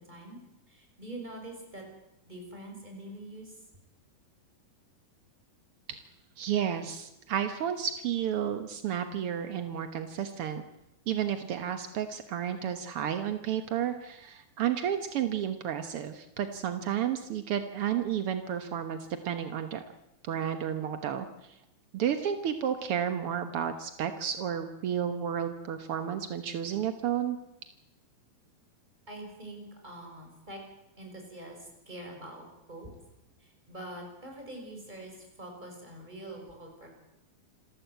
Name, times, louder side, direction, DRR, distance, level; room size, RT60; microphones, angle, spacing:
voice 1, 0.1-0.4 0.7-1.8 2.2-3.6 29.1-30.6 31.0-32.9 33.4-36.9, right 1 dB, 10° right, 1 dB, 6.0 m, -44 dB
voice 2, 6.4-10.6 11.1-19.8 20.3-21.3 21.9-27.4, right 9 dB, 70° right, 8 dB, 1.3 m, -32 dB
27.5 x 14.0 x 8.1 m, 0.89 s
omnidirectional pair, 4.2 m